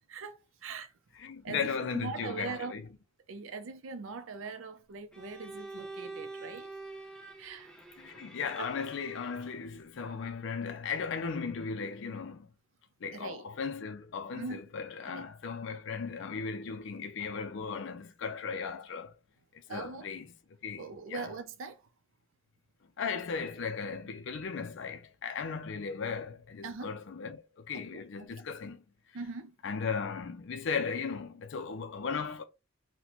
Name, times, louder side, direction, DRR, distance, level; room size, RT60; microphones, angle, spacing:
voice 1, 0.1-0.9 1.4-2.7 3.3-6.7 7.4-7.7 8.6-8.7 13.1-13.4 14.4-14.6 15.1-15.2 19.7-20.1 20.8-21.9 26.6-26.9 27.7-28.3 29.1-29.5, right 4 dB, 80° right, 0.5 m, -41 dB
voice 2, 1.2-2.8 8.0-12.5 13.0-19.1 19.5-20.3 20.6-20.8 21.1-21.3 23.0-28.8 29.6-32.4, left 5 dB, 65° left, 0.4 m, -36 dB
Bowed string instrument, 5.1-9.6, right 3 dB, 5° left, 0.5 m, -46 dB
4.0 x 2.1 x 2.9 m
head